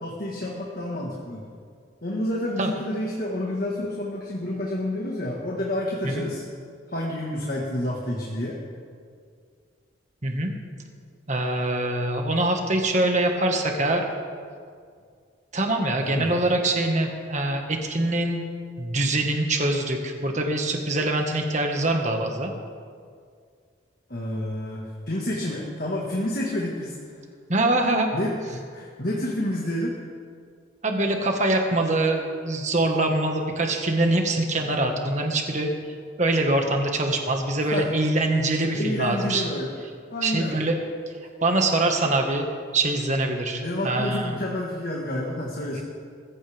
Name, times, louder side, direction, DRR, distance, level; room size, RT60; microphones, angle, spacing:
voice 1, 0.0-1.4 2.0-6.4 6.9-8.6 16.1-16.3 24.1-27.0 28.1-30.0 37.6-37.9 38.7-39.7 40.1-40.6 43.6-45.8, left 1 dB, 50° left, -3 dB, 1.7 m, -29 dB
voice 2, 11.3-14.1 15.5-18.4 18.8-22.5 27.5-28.1 30.8-35.7 36.2-39.4 40.2-40.8 41.4-42.5 42.7-44.4 45.7-45.8, right 2 dB, 35° right, 3 dB, 1.7 m, -24 dB
21.0 x 15.5 x 3.6 m, 2.1 s
head